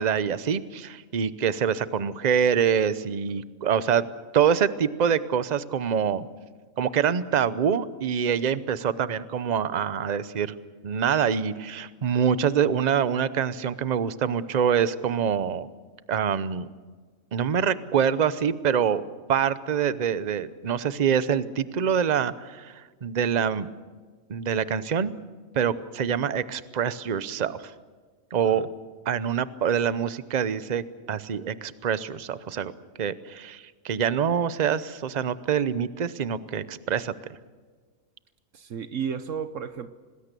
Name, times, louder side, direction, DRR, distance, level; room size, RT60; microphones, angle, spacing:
voice 1, 0.0-4.0 4.3-6.3 6.8-10.5 10.8-15.7 16.1-16.7 17.3-19.0 19.3-23.7 24.3-25.1 25.5-27.7 28.3-28.7 29.1-32.7 33.0-37.1, right 7 dB, 40° right, 15 dB, 0.8 m, -25 dB
voice 2, 38.5-39.9, right 7 dB, 65° right, 11 dB, 1.1 m, -33 dB
26.5 x 19.5 x 6.8 m, 1.4 s
omnidirectional pair, 1.4 m